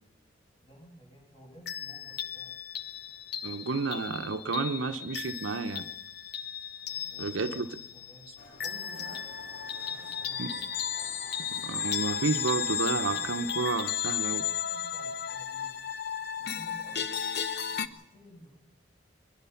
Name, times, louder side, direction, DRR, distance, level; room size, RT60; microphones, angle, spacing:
voice 1, 0.6-2.6 6.9-9.3 9.9-10.6 13.0-13.6 14.2-15.8 16.4-17.3 17.7-18.5, equal, 30° left, 7.9 m, -54 dB
Sad Toys Factory, 1.7-17.9, left 8 dB, 60° left, 0.8 m, -35 dB
voice 2, 3.4-5.9 7.2-7.7 10.4-10.5 11.5-14.4, right 4 dB, 90° right, 0.8 m, -31 dB
sound 1, 8.4-13.6, left 2 dB, 75° left, 3.7 m, -52 dB
21.5 x 21.0 x 5.8 m
head